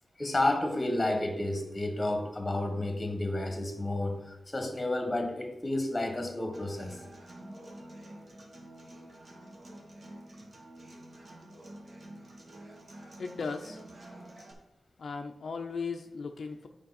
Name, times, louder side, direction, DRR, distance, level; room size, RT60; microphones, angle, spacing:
voice 1, 0.2-7.0, left 1 dB, 20° left, 4 dB, 1.2 m, -31 dB
Human voice / Acoustic guitar, 6.5-14.5, right 1 dB, 40° right, 1.2 m, -49 dB
voice 2, 13.2-13.8 15.0-16.7, left 4 dB, 65° left, 4 dB, 0.5 m, -37 dB
9.4 x 5.1 x 4.1 m, 0.94 s
wide cardioid pair, 175°, 0 cm